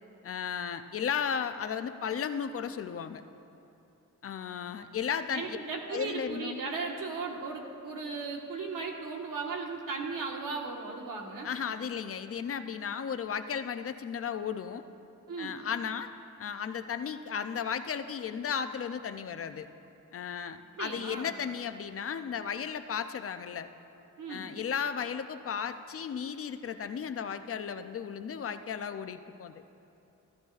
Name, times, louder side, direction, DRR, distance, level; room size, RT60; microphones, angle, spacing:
voice 1, 0.2-3.2 4.2-5.6 5.9-6.6 11.4-14.8 15.4-16.1 16.4-19.7 20.1-23.7 24.3-29.5, left 7 dB, 45° left, 9 dB, 0.4 m, -35 dB
voice 2, 5.3-11.5 15.3-15.6 20.7-21.4 24.2-24.5, right 4 dB, 80° right, 0 dB, 1.4 m, -36 dB
15.0 x 13.5 x 2.4 m, 2.9 s
wide cardioid pair, 170°, 32 cm